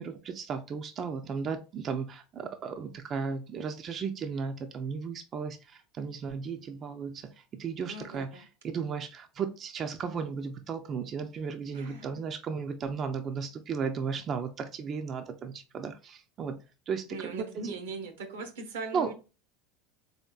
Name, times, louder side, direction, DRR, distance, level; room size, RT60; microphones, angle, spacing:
voice 1, 0.0-17.8 18.9-19.1, right 6 dB, 40° right, 0.4 m, -35 dB
voice 2, 7.9-8.5 11.7-12.1 17.1-19.1, right 3 dB, 80° right, 0.8 m, -40 dB
3.6 x 3.5 x 2.3 m
hypercardioid pair, 90°, 0 cm